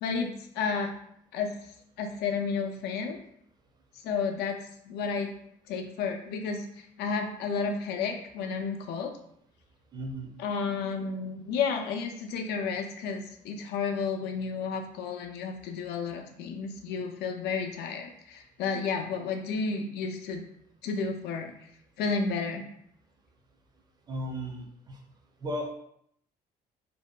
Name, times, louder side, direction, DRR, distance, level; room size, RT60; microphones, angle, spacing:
voice 1, 0.0-0.9 1.3-1.5 2.0-3.2 4.0-4.6 4.9-5.3 5.7-9.1 10.4-20.4 20.8-21.5 22.0-22.6, left 5 dB, 80° left, 4 dB, 0.4 m, -32 dB
voice 2, 9.9-10.3 24.1-25.0 25.4-25.7, equal, 25° right, 2 dB, 0.5 m, -35 dB
2.6 x 2.1 x 2.2 m, 0.72 s
cardioid pair, 110°, 17 cm